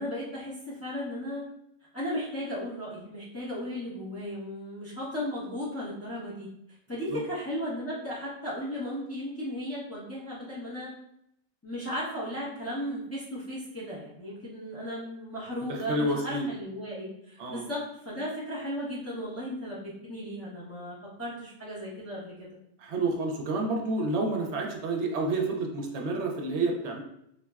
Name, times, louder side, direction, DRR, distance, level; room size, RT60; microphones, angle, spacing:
voice 1, 0.0-1.4 1.9-6.5 6.9-10.9 11.6-22.6, equal, 15° left, -8 dB, 0.6 m, -36 dB
voice 2, 15.7-16.5 17.4-17.7 22.8-27.0, right 2 dB, 75° right, 1 dB, 0.9 m, -29 dB
3.8 x 2.1 x 2.3 m, 0.77 s
omnidirectional pair, 1.2 m